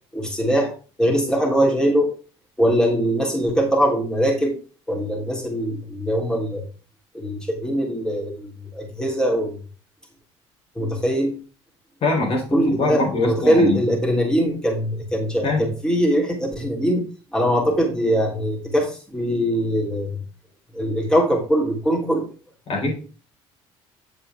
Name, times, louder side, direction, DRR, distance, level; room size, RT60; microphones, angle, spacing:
voice 1, 0.1-0.7 1.0-2.1 2.6-4.5 4.9-6.6 7.1-9.6 10.8-11.3 12.5-17.0 17.3-20.2 20.7-22.3, equal, 5° left, -1 dB, 3.5 m, -21 dB
voice 2, 12.0-13.9 15.4-15.7 22.7-23.0, left 3 dB, 55° left, 0 dB, 4.0 m, -23 dB
8.4 x 6.7 x 3.6 m, 0.36 s
supercardioid pair, 85°, 12 cm